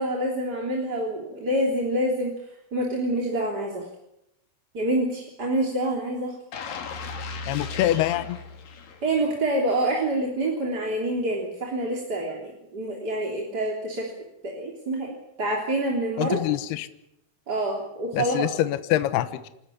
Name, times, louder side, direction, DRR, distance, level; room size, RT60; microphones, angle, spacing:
voice 1, 0.0-2.3 2.7-3.9 4.7-6.4 9.0-14.1 14.4-16.4 17.5-18.5, right 1 dB, 25° right, -1 dB, 3.2 m, -27 dB
sound 1, 6.5-9.5 9.9-10.0, left 4 dB, 55° left, 3.6 m, -36 dB
voice 2, 7.5-8.4 16.2-16.9 18.1-19.5, left 14 dB, 70° left, 12 dB, 2.8 m, -25 dB
28.0 x 13.0 x 9.9 m, 0.82 s
omnidirectional pair, 5.3 m